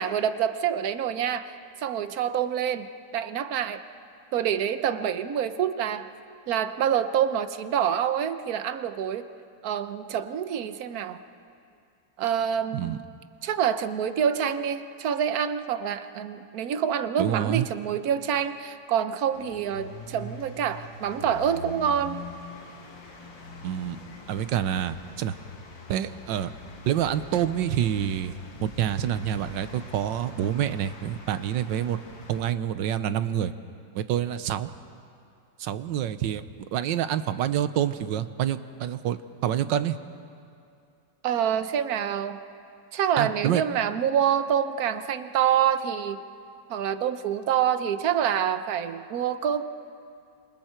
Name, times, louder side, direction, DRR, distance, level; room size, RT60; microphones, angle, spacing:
voice 1, 0.0-1.5 1.8-3.8 4.3-6.1 6.5-9.3 9.6-11.2 12.2-13.0 13.4-22.2 41.2-42.4 42.9-46.2 46.7-49.6, right 9 dB, 60° right, 10 dB, 1.2 m, -26 dB
voice 2, 17.2-17.7 23.6-24.0 24.3-25.4 25.9-26.5 26.9-28.4 28.6-32.0 32.3-33.5 33.9-34.7 35.6-36.4 36.7-40.0 43.2-43.6, right 10 dB, 80° right, 12 dB, 1.5 m, -27 dB
sound 1, 19.3-32.4, left 2 dB, 85° left, 2.8 m, -44 dB
28.0 x 27.0 x 4.5 m, 2.5 s
omnidirectional pair, 2.0 m